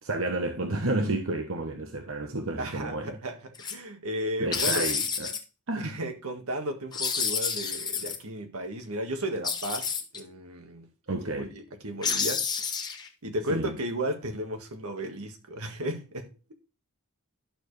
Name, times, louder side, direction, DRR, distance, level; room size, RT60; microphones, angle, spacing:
voice 1, 0.0-3.1 4.4-5.4 5.7-6.0 11.1-11.5 13.5-13.7, right 2 dB, 65° right, 1.1 m, -31 dB
voice 2, 2.6-3.4 3.7-4.8 5.7-12.4 13.2-16.5, right 1 dB, 85° right, 1.7 m, -34 dB
sound 1, 3.6-3.7 4.5-5.4 6.9-8.2 9.4-10.2 12.0-13.1, left 6 dB, 20° left, 1.0 m, -29 dB
11.5 x 6.9 x 3.3 m
head